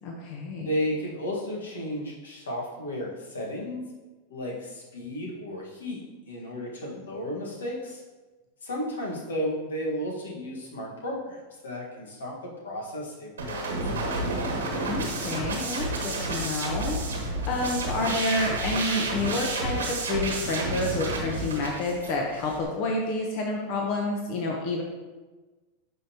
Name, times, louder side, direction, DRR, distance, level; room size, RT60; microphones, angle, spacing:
voice 1, 0.0-0.7 14.9-24.8, left 2 dB, 55° left, 0 dB, 0.9 m, -29 dB
voice 2, 0.6-3.8 4.3-6.0 6.3-8.0 8.6-14.2, equal, 85° left, -2 dB, 1.5 m, -33 dB
sound 1, 13.4-22.6, right 2 dB, 90° right, 1.3 m, -30 dB
10.5 x 3.8 x 2.9 m, 1.2 s
hypercardioid pair, 100°, 0 cm